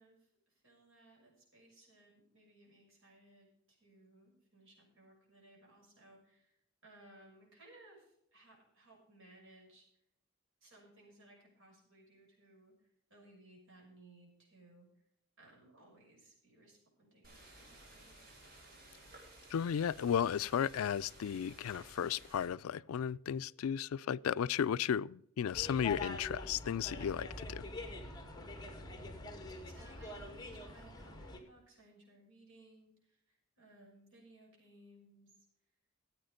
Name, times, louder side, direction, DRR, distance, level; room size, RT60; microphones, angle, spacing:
voice 1, 0.0-6.6 6.8-9.9 10.6-14.9 15.4-18.3 29.6-35.4, right 2 dB, 65° right, 6.1 m, -62 dB
sound 1, 17.2-22.5, right 1 dB, 50° right, 4.3 m, -57 dB
voice 2, 19.5-27.6, left 8 dB, 80° left, 0.4 m, -34 dB
sound 2, 25.5-31.4, left 2 dB, 20° left, 1.9 m, -45 dB
14.5 x 8.7 x 5.1 m
head